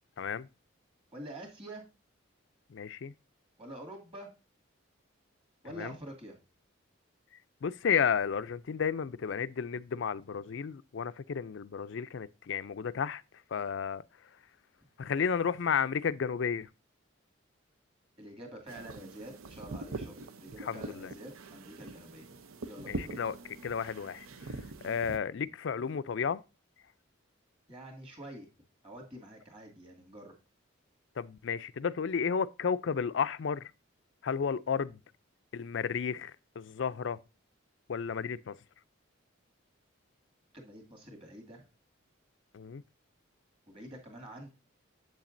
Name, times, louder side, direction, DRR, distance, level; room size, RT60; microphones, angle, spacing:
voice 1, 0.2-0.5 2.7-3.1 5.8-5.9 7.6-13.2 13.5-14.0 15.0-16.7 20.6-21.1 22.9-23.4 23.6-24.3 24.8-26.4 31.2-33.7 34.2-35.0 35.5-37.2 37.9-38.5 42.5-42.8, left 6 dB, 60° left, 0.4 m, -32 dB
voice 2, 1.1-1.8 3.6-4.3 5.6-6.4 18.2-22.4 22.6-23.1 25.4-25.5 27.7-28.5 28.8-30.3 40.5-41.7 43.7-44.5, right 1 dB, 25° right, 2.3 m, -47 dB
sound 1, 18.7-25.2, right 2 dB, 85° right, 0.7 m, -43 dB
7.8 x 7.2 x 2.6 m
head